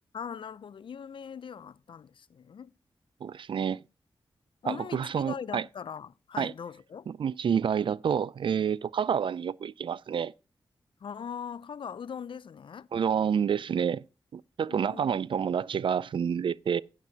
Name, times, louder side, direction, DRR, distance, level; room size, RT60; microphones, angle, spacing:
voice 1, 0.1-2.7 4.6-7.1 11.0-12.9 14.7-15.2, left 7 dB, 65° left, 0.4 m, -40 dB
voice 2, 3.2-3.8 4.6-5.6 6.4-6.5 7.1-10.3 12.9-14.0 14.3-16.8, right 7 dB, 65° right, 0.3 m, -28 dB
11.5 x 9.1 x 2.7 m
cardioid pair, 55°, 9 cm